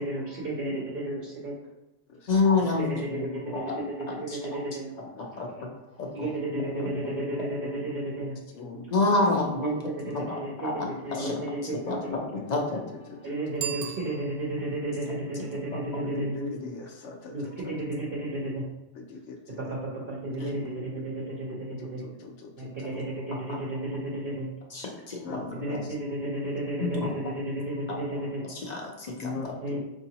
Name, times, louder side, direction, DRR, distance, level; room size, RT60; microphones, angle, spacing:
voice 1, 0.0-1.7 2.6-4.9 6.1-8.4 9.6-12.2 13.2-16.3 17.3-18.7 19.5-22.0 22.6-24.5 25.5-28.4 29.6-29.8, right 1 dB, 55° right, -5 dB, 0.9 m, -33 dB
voice 2, 2.3-2.9 3.5-3.8 4.3-4.4 5.4-5.7 6.0-6.3 6.8-6.9 8.9-9.8 10.1-11.4 11.7-12.2 12.5-13.0 15.7-15.8 23.5-23.6 24.7-25.4 25.7-25.8 26.8-27.1 27.9-28.0 28.4-29.5, left 3 dB, 45° left, 0 dB, 0.6 m, -28 dB
voice 3, 3.1-3.4 5.2-5.3 5.5-5.6 6.5-7.7 8.5-9.0 10.8-11.3 11.6-12.8 13.1-13.3 14.1-14.2 15.9-17.7 19.1-19.6 20.4-20.8 21.2-21.3 21.8-23.0 25.2-25.8 29.2-29.8, left 3 dB, 70° left, 2 dB, 1.0 m, -39 dB
Bicycle bell, 13.5-14.8, right 8 dB, 85° right, 0.9 m, -37 dB
4.7 x 2.7 x 2.8 m, 0.97 s
omnidirectional pair, 1.3 m